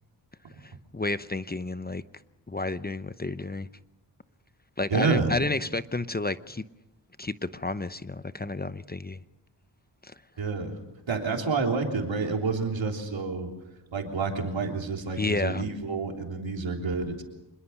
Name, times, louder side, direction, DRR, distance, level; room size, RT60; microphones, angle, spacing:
voice 1, 0.6-2.0 2.5-3.7 4.8-6.6 7.2-9.2 10.0-10.1 15.2-15.6, left 2 dB, 20° left, 0.8 m, -31 dB
voice 2, 4.9-5.3 10.4-10.7 11.1-13.5 13.9-17.2, right 4 dB, 85° right, 3.6 m, -28 dB
26.5 x 21.5 x 5.9 m
cardioid pair, 50°, 45 cm